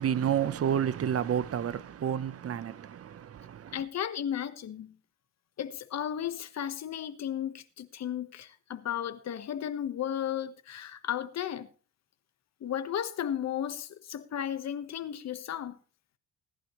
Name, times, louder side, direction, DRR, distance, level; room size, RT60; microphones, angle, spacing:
voice 1, 0.0-3.8, right 9 dB, 50° right, 1.0 m, -30 dB
voice 2, 3.7-4.9 5.6-11.7 12.6-15.8, left 10 dB, 60° left, 1.4 m, -34 dB
18.0 x 11.0 x 3.2 m
cardioid pair, 90°, 30 cm